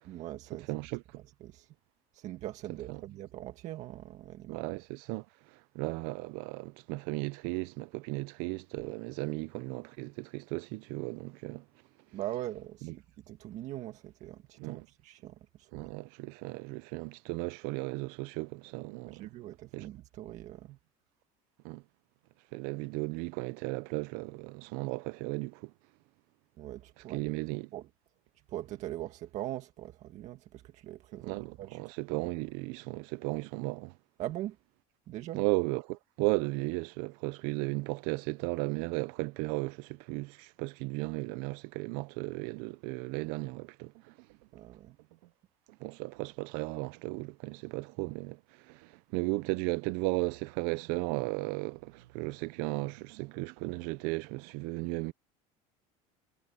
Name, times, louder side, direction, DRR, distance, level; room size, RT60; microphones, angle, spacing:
voice 1, 0.0-0.7 1.1-1.8 2.1-4.7 12.1-15.9 19.1-20.8 26.6-27.3 27.7-27.9 28.5-32.2 34.2-34.6 35.1-35.4 44.5-45.0, right 14 dB, 50° right, 1.8 m, -42 dB
voice 2, 0.7-1.2 2.9-3.0 4.5-11.7 12.8-12.9 14.6-14.8 15.7-19.3 19.7-19.9 21.6-21.8 22.5-25.7 27.1-27.7 31.2-33.9 35.3-44.2 45.8-55.1, right 24 dB, 70° right, 0.6 m, -35 dB
sound 1, 42.2-42.8 43.1-43.5 43.8-44.6 45.0-45.3 45.7-46.5 46.8-47.2 47.5-48.3 48.7-49.0 49.4-54.5, right 19 dB, 90° right, 1.9 m, -58 dB
cardioid pair, 145°, 16 cm